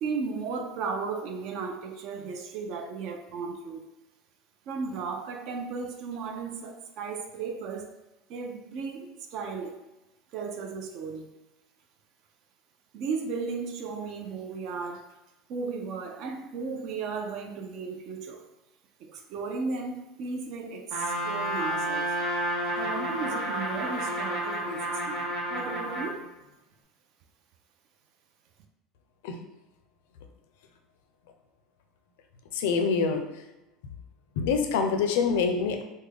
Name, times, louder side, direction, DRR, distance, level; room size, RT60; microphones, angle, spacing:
voice 1, 0.0-3.8 4.7-7.9 8.3-9.8 10.3-11.3 12.9-15.0 15.5-18.4 19.0-22.1 22.8-25.2 25.5-26.2, right 4 dB, 45° right, 5 dB, 0.4 m, -35 dB
Trumpet, 20.9-26.2, right 1 dB, 65° right, 0.9 m, -30 dB
voice 2, 32.5-33.2 33.8-33.9 34.4-35.8, left 5 dB, 80° left, 6 dB, 0.4 m, -25 dB
3.4 x 2.2 x 3.4 m, 0.99 s
cardioid pair, 175°, 0 cm